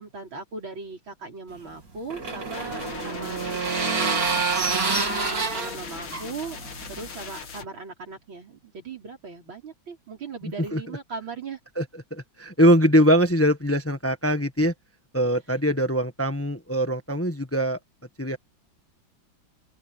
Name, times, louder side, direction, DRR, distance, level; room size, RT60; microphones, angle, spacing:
voice 1, 0.0-4.7 5.0-6.6 6.9-11.6, right 4 dB, 85° right, 5.5 m, -38 dB
sound 1, 1.6-7.1, right 4 dB, 45° right, 3.4 m, -27 dB
sound 2, 2.5-7.7, left 5 dB, 75° left, 2.9 m, -39 dB
voice 2, 12.1-14.7 15.1-17.8 18.2-18.4, equal, 10° left, 1.2 m, -22 dB
open air
omnidirectional pair, 2.1 m